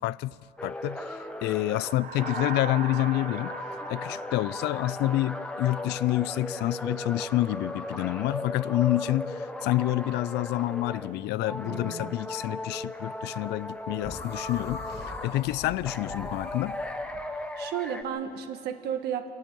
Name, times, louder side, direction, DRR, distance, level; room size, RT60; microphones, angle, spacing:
voice 1, 0.0-3.6 3.9-16.8, left 16 dB, 85° left, 0.4 m, -28 dB
sound 1, 0.6-11.1 11.4-15.4 15.8-18.0, left 1 dB, 5° left, 1.3 m, -37 dB
sound 2, 1.3-5.9, right 5 dB, 55° right, 1.8 m, -40 dB
voice 2, 11.6-12.1 17.2-19.3, right 9 dB, 75° right, 1.5 m, -34 dB
sound 3, 14.0-17.2, left 3 dB, 35° left, 1.7 m, -40 dB
25.5 x 11.0 x 9.2 m
cardioid pair, 110°, 17 cm